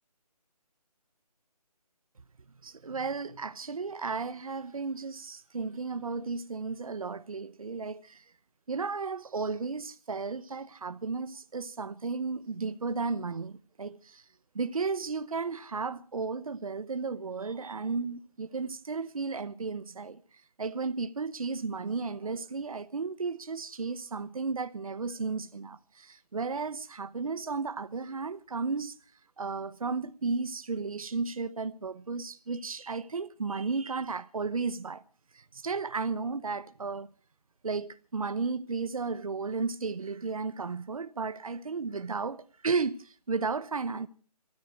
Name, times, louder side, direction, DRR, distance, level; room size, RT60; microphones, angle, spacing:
voice 1, 2.6-8.2 8.7-14.2 14.5-20.2 20.6-29.0 29.4-35.0 35.3-37.1 37.6-44.1, right 4 dB, 60° right, 1.0 m, -34 dB
20.0 x 14.0 x 4.5 m
figure-of-eight pair, 170°, 21 cm